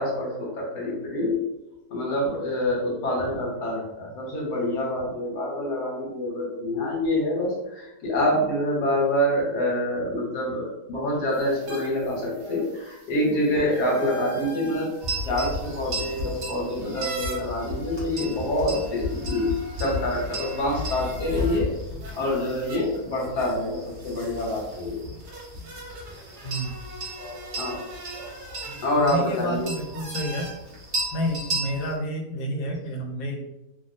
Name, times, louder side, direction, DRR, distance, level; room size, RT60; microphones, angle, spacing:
voice 1, 0.0-1.4 1.9-14.9 15.2-21.7 22.2-25.1 27.6-27.8 28.8-29.7, left 1 dB, 90° left, -2 dB, 1.4 m, -26 dB
sound 1, 11.3-21.6 22.0-30.5, right 1 dB, 90° right, 1.3 m, -43 dB
sound 2, 15.0-32.0, equal, 50° right, 1.2 m, -34 dB
voice 2, 26.4-26.8 29.0-30.5 31.1-33.4, equal, 70° left, 2 dB, 1.0 m, -29 dB
3.4 x 2.2 x 2.6 m, 0.95 s
omnidirectional pair, 1.7 m